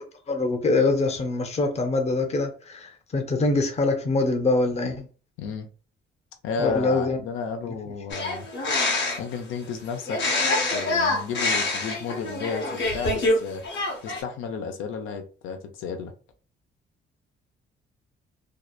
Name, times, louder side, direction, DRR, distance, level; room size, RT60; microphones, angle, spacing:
voice 1, 0.3-5.1 6.6-7.2 7.7-7.8 8.1-8.2, left 3 dB, 35° left, 0.6 m, -24 dB
voice 2, 6.4-8.5 9.2-10.2 10.7-13.6 14.0-16.1, left 5 dB, 85° left, 0.5 m, -33 dB
sound 1, 8.1-9.4 10.1-13.4 13.6-14.2, left 2 dB, 65° left, 0.9 m, -25 dB
2.7 x 2.1 x 2.3 m
cardioid pair, 90°, 20 cm